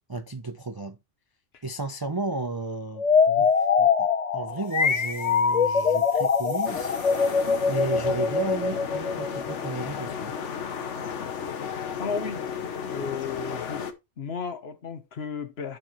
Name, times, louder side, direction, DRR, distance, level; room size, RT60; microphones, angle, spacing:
voice 1, 0.1-1.0 1.6-3.1 3.4-4.1 4.3-7.0 7.7-10.3, right 3 dB, 30° right, 0.4 m, -33 dB
sound 1, 3.0-9.7, left 5 dB, 40° left, 0.7 m, -23 dB
sound 2, 4.6-8.2, right 2 dB, 50° right, 2.4 m, -49 dB
sound 3, 6.7-13.9, left 7 dB, 80° left, 1.3 m, -33 dB
voice 2, 12.0-12.4 12.9-13.9 14.2-15.8, left 5 dB, 60° left, 1.2 m, -34 dB
12.0 x 4.6 x 3.0 m
omnidirectional pair, 1.2 m